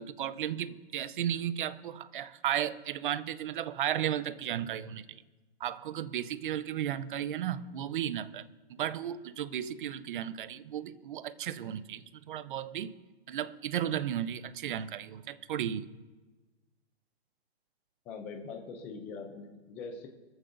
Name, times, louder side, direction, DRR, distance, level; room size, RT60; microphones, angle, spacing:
voice 1, 0.0-5.2 5.6-8.4 8.7-13.0 13.3-15.9, right 10 dB, 50° right, 15 dB, 0.8 m, -34 dB
voice 2, 18.1-20.1, left 4 dB, 5° left, 3 dB, 0.3 m, -42 dB
23.5 x 14.5 x 2.6 m, 1.2 s
hypercardioid pair, 150°, 33 cm